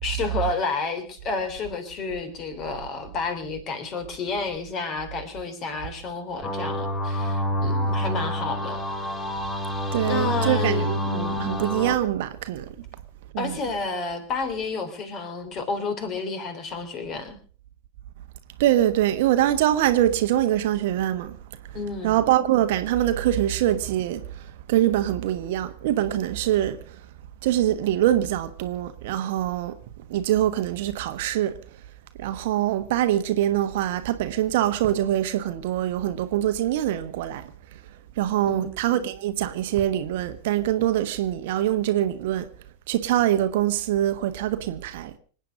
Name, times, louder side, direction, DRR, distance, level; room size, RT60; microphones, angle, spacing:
voice 1, 0.0-8.8 10.0-10.9 13.4-17.4 21.7-22.2 38.5-39.1, left 4 dB, 35° left, 3.4 m, -30 dB
sound 1, 6.4-11.9, left 1 dB, 15° left, 2.4 m, -27 dB
voice 2, 9.9-12.6 13.3-13.6 18.6-21.4 22.0-27.0 27.4-29.7 30.1-31.5 32.2-37.5 38.2-42.5 42.9-45.1, right 12 dB, 50° right, 1.2 m, -24 dB
26.0 x 9.1 x 5.1 m
figure-of-eight pair, 90°, 0 cm